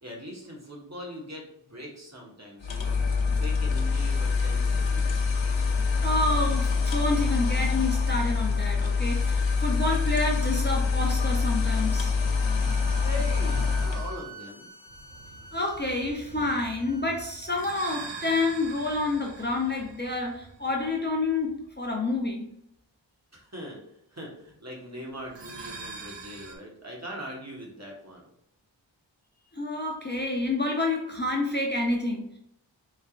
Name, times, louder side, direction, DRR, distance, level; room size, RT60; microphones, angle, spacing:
voice 1, 0.0-3.0 3.3-5.4 13.0-14.7 23.3-23.8 24.1-28.2, equal, 35° right, -2 dB, 1.3 m, -41 dB
sound 1, 2.6-14.2, left 4 dB, 70° left, 0.8 m, -25 dB
voice 2, 6.0-12.1 15.5-22.5 29.5-32.4, left 2 dB, 25° left, -1 dB, 0.6 m, -28 dB
sound 2, 12.4-18.1, right 4 dB, 10° left, 1.1 m, -48 dB
sound 3, 14.9-21.5 25.2-26.6, right 4 dB, 65° right, 0.8 m, -43 dB
4.2 x 3.3 x 2.4 m, 0.76 s
wide cardioid pair, 50°, 46 cm